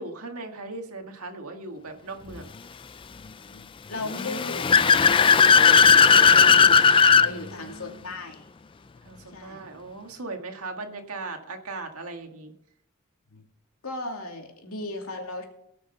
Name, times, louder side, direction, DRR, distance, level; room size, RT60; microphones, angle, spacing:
voice 1, 0.0-2.5 7.2-8.1 9.0-12.5, right 3 dB, 80° right, 4 dB, 1.9 m, -38 dB
voice 2, 3.5-8.4 9.3-9.6 13.3-13.4 13.8-15.4, left 2 dB, 75° left, 2 dB, 2.6 m, -37 dB
Car / Accelerating revving vroom, 4.1-7.3, left 6 dB, 25° left, 0.4 m, -16 dB
18.0 x 6.3 x 5.5 m, 0.79 s
head